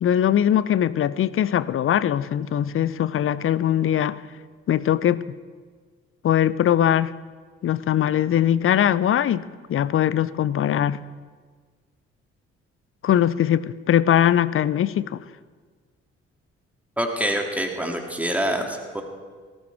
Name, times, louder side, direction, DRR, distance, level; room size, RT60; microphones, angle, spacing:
voice 1, 0.0-4.2 4.7-5.2 6.2-7.1 7.6-9.4 9.7-11.0 13.0-15.2, left 10 dB, 35° left, 18 dB, 0.5 m, -21 dB
voice 2, 17.0-19.0, equal, 5° right, 2 dB, 2.4 m, -26 dB
18.5 x 14.5 x 3.5 m, 1.5 s
figure-of-eight pair, 40°, 35 cm